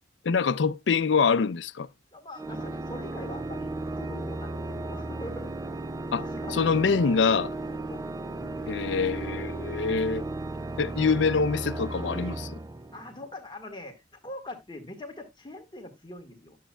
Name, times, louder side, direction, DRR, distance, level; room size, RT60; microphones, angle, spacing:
voice 1, 0.2-1.9 6.1-6.2 6.5-7.5 8.7-10.2 10.8-12.6, left 5 dB, 85° left, 0.5 m, -25 dB
voice 2, 2.1-5.7 6.2-7.3 7.6-8.8 12.9-16.6, left 1 dB, 25° left, 1.7 m, -43 dB
Organ, 2.4-13.3, right 2 dB, 20° right, 0.4 m, -35 dB
11.5 x 7.3 x 2.2 m
head